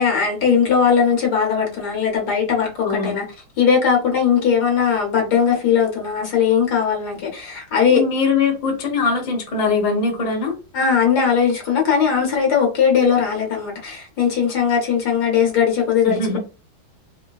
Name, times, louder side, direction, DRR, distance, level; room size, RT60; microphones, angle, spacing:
voice 1, 0.0-3.2 3.6-8.0 10.7-16.2, left 7 dB, 60° left, 1.2 m, -19 dB
voice 2, 2.8-3.1 7.9-10.5 16.0-16.4, left 4 dB, 40° left, 0.5 m, -21 dB
3.8 x 2.1 x 2.2 m
omnidirectional pair, 2.3 m